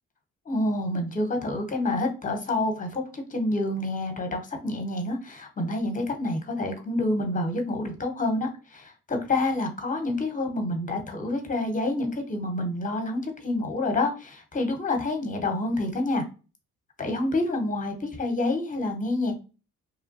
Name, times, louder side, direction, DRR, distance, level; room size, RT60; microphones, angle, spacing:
voice 1, 0.5-16.2 17.0-19.4, left 2 dB, 25° left, 5 dB, 0.9 m, -28 dB
3.1 x 2.2 x 2.5 m, 0.33 s
cardioid pair, 90°, 30 cm